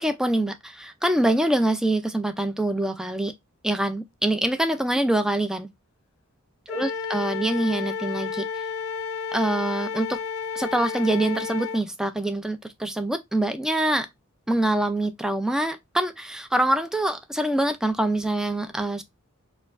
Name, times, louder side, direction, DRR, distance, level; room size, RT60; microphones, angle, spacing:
voice 1, 0.0-3.3 3.6-5.7 6.7-8.5 9.3-10.2 10.6-14.1 14.5-19.0, right 1 dB, 5° right, 0.4 m, -25 dB
Wind instrument woodwind instrument, 6.7-11.8, left 6 dB, 75° left, 0.4 m, -31 dB
4.3 x 2.3 x 2.4 m
head